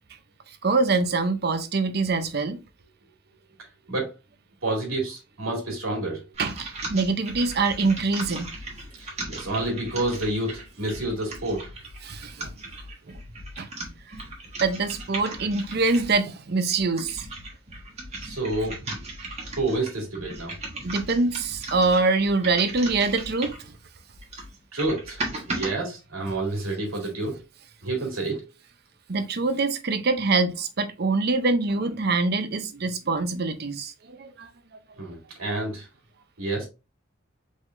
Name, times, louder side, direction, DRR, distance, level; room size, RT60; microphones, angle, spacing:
voice 1, 0.6-2.6 6.4-8.5 12.0-12.5 13.1-13.2 13.6-13.7 14.1-14.2 14.6-17.3 20.7-23.7 29.1-34.5, right 3 dB, 50° right, 0.7 m, -24 dB
voice 2, 4.6-6.3 9.0-11.7 18.2-19.0 19.5-20.5 24.7-25.2 25.5-27.4 27.8-28.4 35.0-35.9 36.4-36.7, right 2 dB, 90° right, 2.5 m, -29 dB
sound 1, 6.3-16.2 16.7-23.7 24.1-25.7, right 2 dB, 30° right, 1.4 m, -37 dB
5.0 x 3.8 x 2.6 m
head